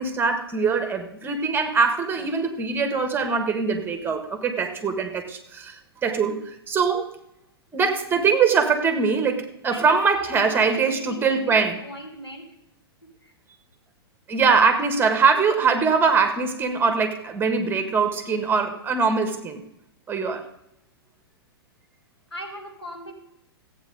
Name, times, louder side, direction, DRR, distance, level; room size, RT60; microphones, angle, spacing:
voice 1, 0.0-7.0 7.7-11.8 14.3-19.6 20.1-20.4, right 5 dB, 15° right, 7 dB, 1.6 m, -22 dB
voice 2, 9.7-12.5 13.2-13.3 22.3-23.1, right 1 dB, 90° left, 1 dB, 2.4 m, -38 dB
15.0 x 8.9 x 4.0 m, 0.81 s
figure-of-eight pair, 105°, 13 cm